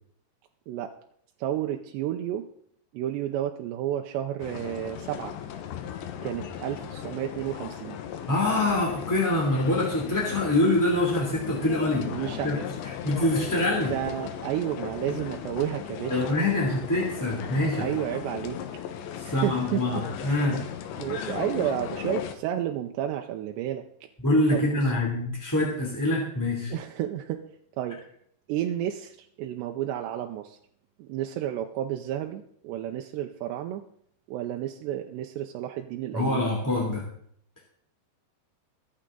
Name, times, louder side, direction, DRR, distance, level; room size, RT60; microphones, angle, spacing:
voice 1, 1.4-2.4 2.9-5.3 6.2-8.0 12.1-12.5 13.9-16.7 17.8-18.6 19.3-19.8 21.0-23.8 24.5-24.9 26.7-27.4 27.8-28.0 28.5-30.6 31.0-33.8 34.3-36.4, right 11 dB, 85° right, 3 dB, 2.9 m, -31 dB
sound 1, 4.4-22.3, left 9 dB, 80° left, 3.4 m, -36 dB
voice 2, 8.3-12.1 12.4-12.6 12.8-13.9 16.1-17.9 19.2-20.6 24.2-26.7 36.1-37.0, left 1 dB, 5° left, -3 dB, 1.8 m, -25 dB
23.0 x 8.9 x 3.9 m, 0.65 s
omnidirectional pair, 5.1 m